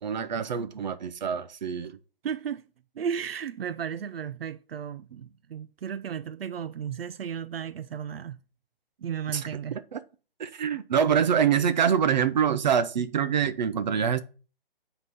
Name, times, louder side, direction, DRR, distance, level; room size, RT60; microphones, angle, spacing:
voice 1, 0.0-2.0 9.3-9.4 9.9-10.0 10.4-14.2, right 8 dB, 50° right, 0.8 m, -25 dB
voice 2, 2.2-2.6 3.0-8.4 9.0-9.8, right 8 dB, 80° right, 0.5 m, -34 dB
8.2 x 3.9 x 5.3 m
hypercardioid pair, 155°, 29 cm